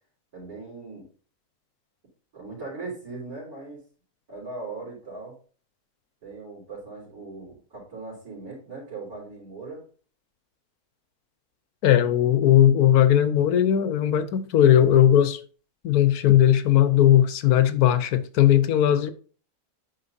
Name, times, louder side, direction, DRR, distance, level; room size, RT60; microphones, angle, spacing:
voice 1, 0.3-1.1 2.3-3.8 4.3-5.4 6.2-9.8 11.9-12.1, right 3 dB, 85° right, 4.2 m, -39 dB
voice 2, 11.8-15.4 15.8-19.1, left 11 dB, 85° left, 1.2 m, -18 dB
9.0 x 5.7 x 2.7 m
omnidirectional pair, 1.6 m